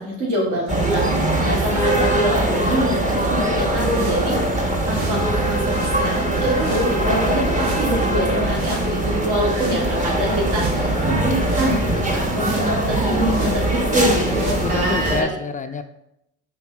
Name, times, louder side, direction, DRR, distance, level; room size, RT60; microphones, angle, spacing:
voice 1, 0.0-15.3, equal, 60° right, -5 dB, 2.9 m, -25 dB
sound 1, 0.7-15.2, right 1 dB, 20° right, 1.3 m, -21 dB
sound 2, 3.8-15.0, right 2 dB, 75° right, 1.7 m, -37 dB
voice 2, 14.1-15.8, left 4 dB, 25° left, 8 dB, 0.4 m, -27 dB
6.0 x 3.8 x 5.8 m, 0.82 s
supercardioid pair, 85°, 35 cm